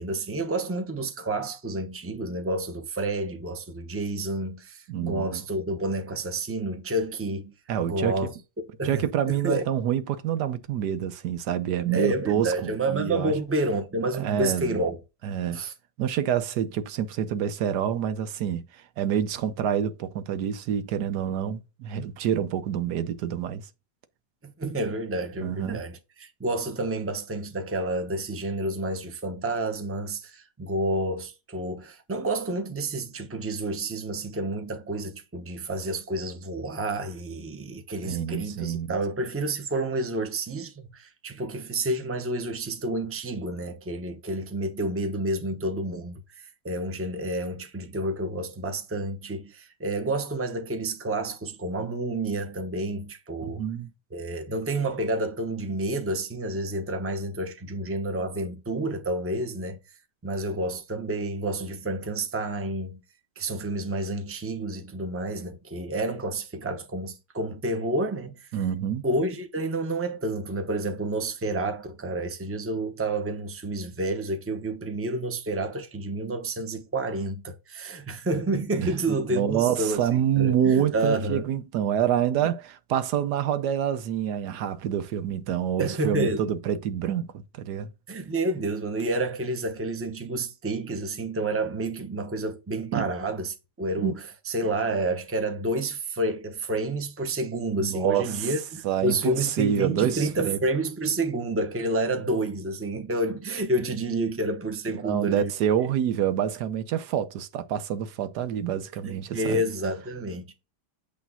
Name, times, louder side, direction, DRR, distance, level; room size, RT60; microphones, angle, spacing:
voice 1, 0.0-7.5 7.8-8.3 8.8-9.6 11.9-15.0 15.5-15.7 24.4-53.7 54.1-59.8 60.2-63.0 63.4-68.5 69.0-81.5 85.8-86.5 88.1-105.5 109.0-110.5, right 2 dB, 10° right, 0.8 m, -29 dB
voice 2, 4.9-5.4 7.7-8.3 8.8-13.3 14.2-14.8 15.2-15.6 16.0-23.6 25.4-25.8 38.0-38.9 53.4-53.9 68.5-69.0 79.3-87.9 92.9-93.1 94.0-94.1 97.8-98.5 98.8-100.6 104.9-109.6, right 9 dB, 75° right, 1.3 m, -27 dB
8.5 x 3.3 x 5.5 m
omnidirectional pair, 1.8 m